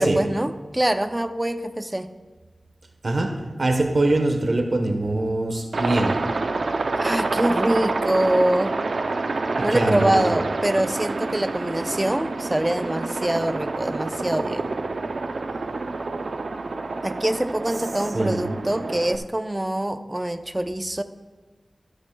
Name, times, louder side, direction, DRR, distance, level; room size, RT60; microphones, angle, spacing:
voice 1, 0.0-2.1 7.0-8.8 9.6-14.8 17.0-21.0, right 1 dB, 20° right, 9 dB, 0.6 m, -24 dB
voice 2, 3.0-6.2 9.6-10.4 18.1-18.5, right 2 dB, 60° right, 4 dB, 1.1 m, -23 dB
Aircraft, 5.7-19.2, right 3 dB, 80° right, 0.5 m, -27 dB
13.5 x 12.5 x 2.3 m, 1.4 s
wide cardioid pair, 80°, 0 cm